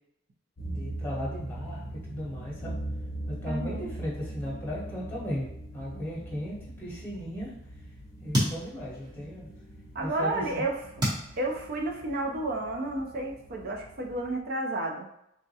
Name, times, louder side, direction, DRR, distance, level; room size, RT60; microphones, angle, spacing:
sound 1, 0.6-14.4, right 1 dB, 45° left, 0.6 m, -41 dB
voice 1, 0.7-1.8 2.1-2.7 3.3-5.5 5.7-7.5 8.2-9.5 10.0-10.6, equal, 10° left, -6 dB, 1.0 m, -36 dB
voice 2, 3.5-3.9 9.9-10.8 11.4-15.1, right 2 dB, 50° right, 2 dB, 0.5 m, -31 dB
sound 2, 8.2-9.8 10.2-12.3, equal, 20° right, 0.8 m, -32 dB
3.5 x 2.1 x 2.7 m, 0.78 s
head